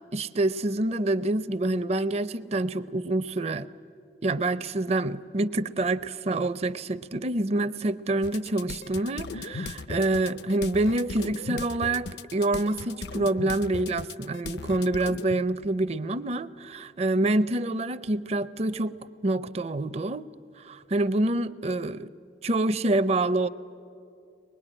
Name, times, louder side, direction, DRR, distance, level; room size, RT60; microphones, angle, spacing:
voice 1, 0.1-3.7 4.2-19.0 19.2-20.3 20.6-22.1 22.4-23.5, right 2 dB, 35° right, 14 dB, 0.5 m, -27 dB
sound 1, 8.2-15.4, left 4 dB, 65° left, 0.5 m, -37 dB
24.0 x 21.0 x 10.0 m, 2.6 s
head